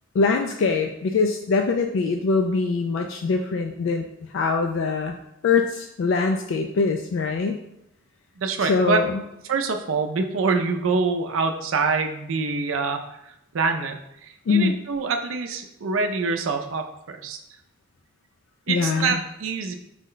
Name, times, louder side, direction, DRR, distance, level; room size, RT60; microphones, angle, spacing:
voice 1, 0.1-4.1 4.3-5.2 5.4-7.6 8.7-9.2 14.5-14.7 18.7-19.2, left 4 dB, 70° left, 4 dB, 0.3 m, -23 dB
voice 2, 8.4-9.0 9.5-13.0 13.5-17.4 18.7-19.7, right 4 dB, 80° right, 5 dB, 0.5 m, -25 dB
4.8 x 2.1 x 3.8 m, 0.82 s
head